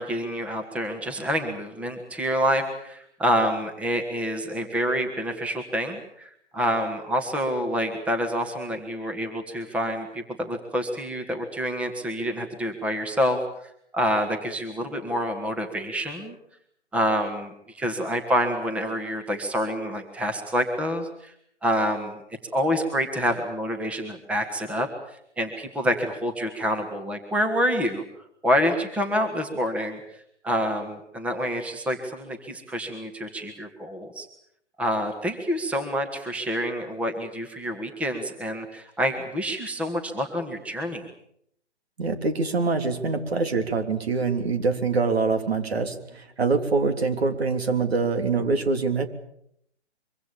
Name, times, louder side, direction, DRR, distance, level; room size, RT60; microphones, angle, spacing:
voice 1, 0.0-16.3 16.9-21.3 21.6-22.2 22.5-24.9 25.4-28.0 28.4-30.0 30.4-34.3 34.8-41.1, equal, 5° right, 5 dB, 1.8 m, -27 dB
voice 2, 42.0-49.1, right 4 dB, 60° right, 7 dB, 3.6 m, -24 dB
24.5 x 24.0 x 7.1 m, 0.72 s
figure-of-eight pair, 135°, 35 cm